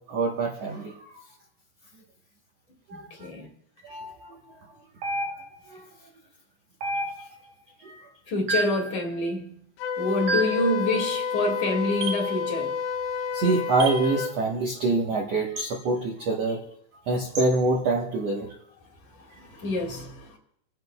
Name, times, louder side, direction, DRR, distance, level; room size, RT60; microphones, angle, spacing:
voice 1, 0.1-1.0 2.9-3.1 3.8-4.5 5.7-5.8 7.8-8.1 13.3-16.6 17.1-18.5, right 3 dB, 90° right, 1.4 m, -26 dB
voice 2, 2.9-3.5 8.3-9.5 10.0-12.7 19.2-20.4, left 2 dB, 50° left, 3.1 m, -27 dB
sound 1, 5.0-5.7 6.8-7.5 8.5-8.9 10.3-10.7 12.0-12.3 13.8-14.1 15.6-15.7 17.3-17.5, right 3 dB, 70° right, 1.5 m, -30 dB
Wind instrument woodwind instrument, 9.8-14.3, left 6 dB, 85° left, 2.1 m, -30 dB
29.5 x 10.5 x 2.3 m
omnidirectional pair, 5.0 m